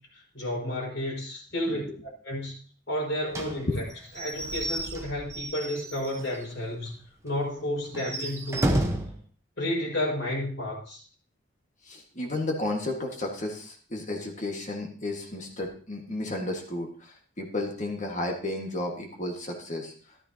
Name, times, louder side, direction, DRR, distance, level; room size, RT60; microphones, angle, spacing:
voice 1, 0.1-1.8 2.2-2.5 2.9-3.8 4.2-7.0 7.2-8.7 9.6-11.0, left 1 dB, 60° left, -4 dB, 5.4 m, -31 dB
Slam / Squeak / Wood, 3.3-6.5 6.9-7.0 7.3-7.4 7.9-9.2, right 1 dB, 15° right, 1.0 m, -31 dB
voice 2, 11.8-19.9, left 2 dB, 35° left, 1 dB, 1.7 m, -32 dB
13.5 x 12.0 x 2.9 m, 0.41 s
head